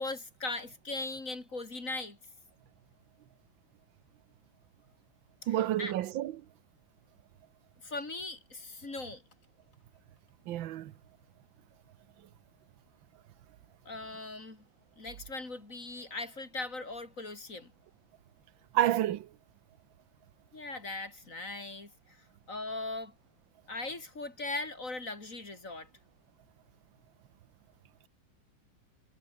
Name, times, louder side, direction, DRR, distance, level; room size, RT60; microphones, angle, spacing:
voice 1, 0.0-2.2 5.4-5.9 7.8-9.2 13.9-14.6 15.0-17.7 20.5-23.1 23.7-25.9, left 2 dB, 40° left, 4.1 m, -39 dB
voice 2, 5.5-6.3 10.5-10.9 18.7-19.2, right 13 dB, 75° right, 1.6 m, -29 dB
omnidirectional pair, 2.1 m